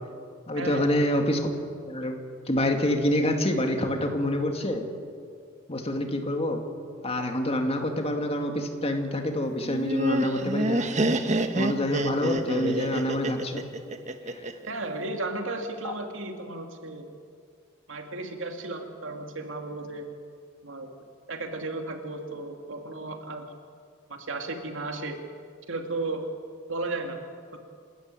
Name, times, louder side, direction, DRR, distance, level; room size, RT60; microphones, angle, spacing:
voice 1, 0.5-1.5 1.9-2.2 2.5-4.9 5.7-6.7 7.0-10.9 11.5-13.7 14.3-14.4 15.8-15.9, left 1 dB, 30° left, 4 dB, 2.4 m, -27 dB
Laughter, 9.6-14.7, right 1 dB, 35° right, 1.3 m, -27 dB
voice 2, 14.7-17.1 17.9-20.1 20.6-20.9 21.3-23.5 24.1-25.2 25.7-26.3 26.7-27.2 27.5-27.6, right 2 dB, 75° right, 4 dB, 2.5 m, -34 dB
28.5 x 13.5 x 9.2 m, 2.2 s
head